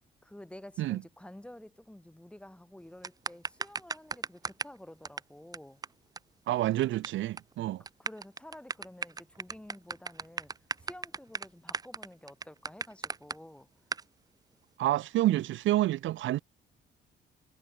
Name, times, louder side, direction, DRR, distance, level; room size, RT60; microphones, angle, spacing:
voice 1, 0.2-5.8 8.0-10.5 10.8-13.7 15.3-15.5, left 1 dB, 5° left, 1.7 m, -50 dB
sound 1, 3.0-4.8 5.0-5.2 5.5-5.6 5.8-5.9 6.2-6.3 6.5-7.1 7.4-7.5 7.9-13.4 13.9-14.0, right 4 dB, 20° right, 0.4 m, -35 dB
voice 2, 6.5-7.8 14.8-16.4, right 15 dB, 75° right, 0.6 m, -28 dB
cardioid pair, 90°, 20 cm